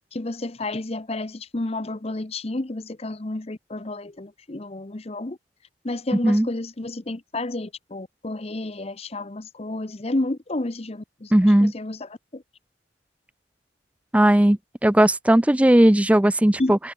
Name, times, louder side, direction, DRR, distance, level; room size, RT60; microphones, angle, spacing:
voice 1, 0.1-5.4 5.8-11.3 11.6-12.4 16.6-16.7, left 2 dB, 30° left, 0.8 m, -31 dB
voice 2, 11.3-11.7 14.1-16.8, right 1 dB, 5° right, 0.4 m, -17 dB
head